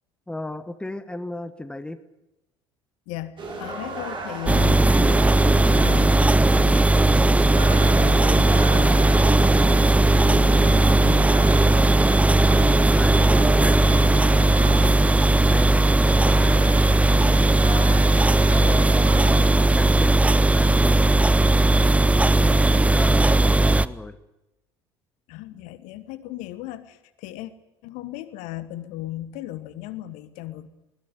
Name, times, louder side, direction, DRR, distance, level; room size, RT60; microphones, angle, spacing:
voice 1, 0.3-2.0 12.4-16.6 16.9-21.6 22.0-24.2, left 1 dB, 5° left, 10 dB, 1.4 m, -36 dB
voice 2, 3.1-6.8 7.1-11.4 25.3-27.5 27.8-30.7, left 14 dB, 60° left, 13 dB, 1.3 m, -37 dB
sound 1, 3.4-19.5, right 2 dB, 35° right, 6.9 m, -35 dB
sound 2, 4.5-23.9, right 2 dB, 10° right, 0.7 m, -17 dB
21.0 x 15.5 x 9.7 m, 0.94 s
figure-of-eight pair, 60°, 14 cm